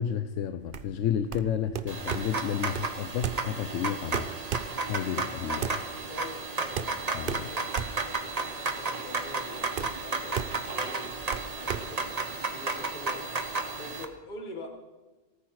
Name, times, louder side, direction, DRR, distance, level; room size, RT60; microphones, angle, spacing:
voice 1, 0.0-4.6 4.9-5.8 7.1-7.5, left 9 dB, 70° left, 11 dB, 1.0 m, -31 dB
sound 1, 0.6-12.8, right 7 dB, 50° right, 0.7 m, -37 dB
sound 2, 1.9-14.0, right 3 dB, 30° right, 1.1 m, -33 dB
voice 2, 6.1-6.9 7.3-14.7, left 2 dB, 40° left, 3 dB, 1.8 m, -46 dB
18.5 x 13.5 x 4.8 m, 1.2 s
omnidirectional pair, 1.4 m